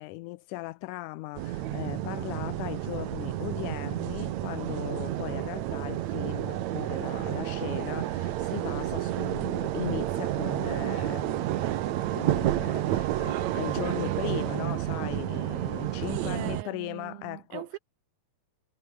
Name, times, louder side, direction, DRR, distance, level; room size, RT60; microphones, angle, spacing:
voice 1, 0.0-17.7, left 19 dB, 85° left, 1.7 m, -38 dB
sound 1, 1.3-16.6, right 13 dB, 70° right, 1.9 m, -30 dB
voice 2, 16.1-17.8, right 19 dB, 85° right, 2.4 m, -40 dB
omnidirectional pair, 4.3 m